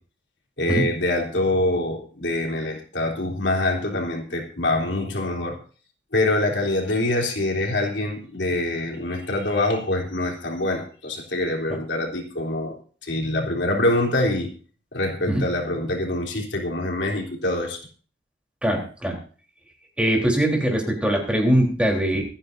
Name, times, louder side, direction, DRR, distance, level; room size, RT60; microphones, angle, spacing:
voice 1, 0.6-5.6 6.1-12.8 13.0-14.5 14.9-17.8, left 1 dB, 70° left, -1 dB, 3.6 m, -25 dB
voice 2, 18.6-19.2 20.0-22.2, equal, 5° right, 0 dB, 3.7 m, -21 dB
26.0 x 10.0 x 2.7 m, 0.40 s
head